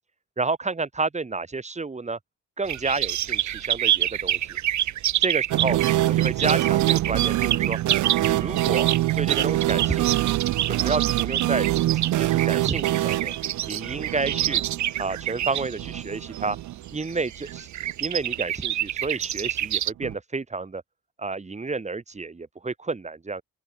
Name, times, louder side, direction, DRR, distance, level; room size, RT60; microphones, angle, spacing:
voice 1, 0.4-2.2 2.6-4.6 5.2-5.8 6.1-7.8 8.2-8.9 9.2-10.3 10.7-11.7 11.9-13.3 13.7-14.6 15.0-16.6 16.9-17.7 18.0-20.8 21.2-23.4, right 3 dB, 25° right, 2.3 m, -30 dB
sound 1, 2.6-19.9, right 12 dB, 70° right, 1.6 m, -28 dB
sound 2, 5.5-17.2 17.5-17.6 17.8-17.9 20.0-20.1, right 15 dB, 90° right, 4.4 m, -25 dB
open air
cardioid pair, 90°, 30 cm